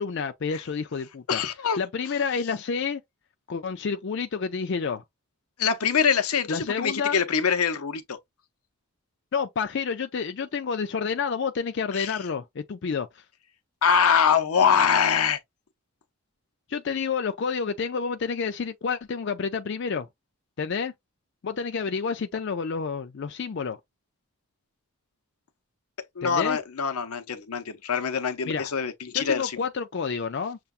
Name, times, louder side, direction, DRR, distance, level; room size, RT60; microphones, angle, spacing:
voice 1, 0.0-1.4 1.8-3.0 3.5-5.0 6.5-7.2 9.3-13.2 16.7-20.1 20.6-20.9 21.4-23.8 26.2-26.6 28.5-28.7 29.1-30.6, left 5 dB, 55° left, 0.4 m, -29 dB
voice 2, 1.3-1.8 5.6-8.2 11.9-12.1 13.8-15.4 26.2-29.5, left 6 dB, 85° left, 0.7 m, -24 dB
6.8 x 2.3 x 2.4 m
head